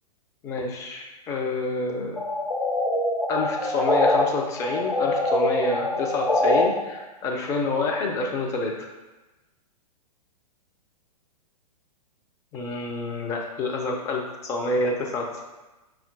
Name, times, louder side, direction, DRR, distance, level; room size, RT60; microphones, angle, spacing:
voice 1, 0.4-2.2 3.3-8.9 12.5-15.4, left 3 dB, 15° left, 1 dB, 0.4 m, -28 dB
sound 1, 2.2-4.2 4.6-6.6, left 1 dB, 85° left, 0.7 m, -24 dB
5.3 x 2.3 x 2.4 m, 1.1 s
figure-of-eight pair, 110°, 20 cm